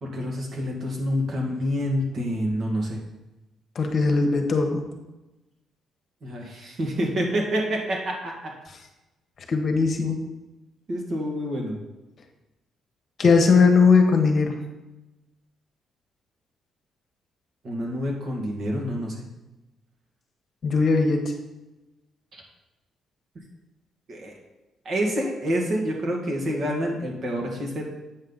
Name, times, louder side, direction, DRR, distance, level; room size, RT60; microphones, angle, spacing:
voice 1, 0.0-3.0 6.2-8.6 10.9-11.8 17.6-19.3 22.3-22.4 24.1-24.3 24.9-27.8, equal, 55° right, 0 dB, 2.0 m, -27 dB
voice 2, 3.7-4.8 9.5-10.2 13.2-14.6 20.6-21.3, left 4 dB, 50° left, 4 dB, 1.2 m, -19 dB
8.1 x 5.6 x 4.0 m, 1.0 s
cardioid pair, 90°, 0 cm